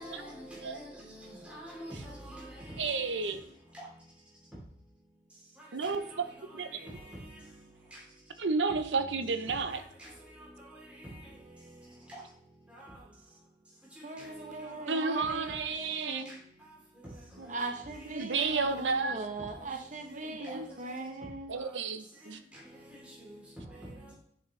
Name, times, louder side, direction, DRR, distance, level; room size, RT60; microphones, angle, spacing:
voice 1, 0.0-2.5 5.8-5.9 10.0-10.1 12.7-12.9 14.8-15.0 16.3-16.4 18.3-18.4, equal, 5° right, 3.1 m, -45 dB
voice 2, 2.8-3.4 5.7-6.3 6.5-6.9 8.4-9.8 14.9-16.2 17.4-17.5 18.1-19.2 20.1-20.7 21.5-22.4, right 4 dB, 80° right, 0.7 m, -32 dB
voice 3, 14.0-16.3 17.5-21.5, right 2 dB, 45° right, 0.8 m, -39 dB
7.9 x 6.3 x 3.2 m
head